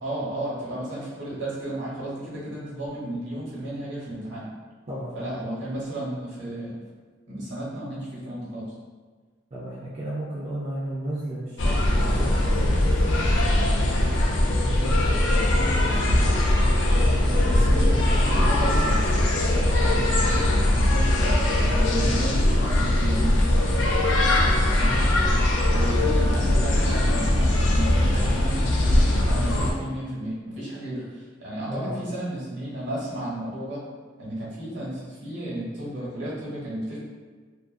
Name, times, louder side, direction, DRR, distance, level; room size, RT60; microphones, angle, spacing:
voice 1, 0.0-4.5 5.1-6.8 7.3-8.7 14.6-16.6 17.5-19.0 19.6-21.3 21.7-23.5 24.7-25.0 25.7-33.8 34.2-37.0, right 1 dB, 70° right, -7 dB, 1.0 m, -33 dB
voice 2, 9.5-13.2 17.3-17.7 19.8-20.0 22.0-22.2 31.7-31.9, right 1 dB, 30° right, -7 dB, 0.4 m, -34 dB
sound 1, 11.6-29.7, left 1 dB, 65° left, 0.4 m, -21 dB
2.6 x 2.4 x 2.5 m, 1.5 s
head